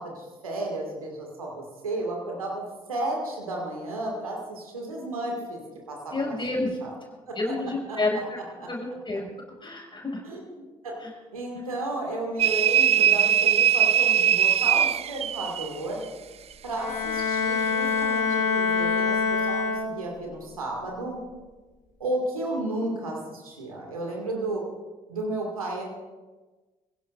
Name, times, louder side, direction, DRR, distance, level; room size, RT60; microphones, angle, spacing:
voice 1, 0.0-2.6 2.9-5.6 5.9-6.9 7.3-7.5 7.9-8.0 8.6-8.7 10.2-11.0 11.3-16.0 16.6-21.2 22.0-24.6 25.1-25.9, right 2 dB, 85° right, -1 dB, 2.3 m, -33 dB
voice 2, 6.1-6.8 7.4-8.4 8.7-9.3 9.6-10.2 11.0-11.1, left 2 dB, 25° left, -1 dB, 6.0 m, -29 dB
sound 1, 12.4-15.7, right 9 dB, 35° right, 0.4 m, -21 dB
Bowed string instrument, 16.8-20.3, left 5 dB, 50° left, 5.4 m, -25 dB
25.5 x 16.5 x 2.6 m, 1.3 s
figure-of-eight pair, 45°, 18 cm